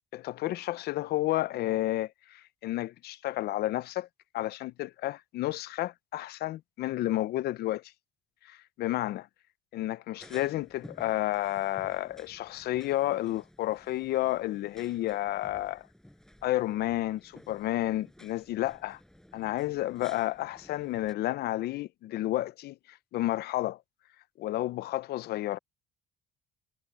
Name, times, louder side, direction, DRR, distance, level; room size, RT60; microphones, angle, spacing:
voice 1, 0.1-4.1 4.3-7.9 8.4-9.3 9.7-15.9 16.4-19.0 19.3-23.8 24.4-25.6, left 15 dB, 70° left, 0.7 m, -31 dB
sound 1, 10.2-21.1, equal, 5° left, 6.7 m, -55 dB
cardioid pair, 110°, 17 cm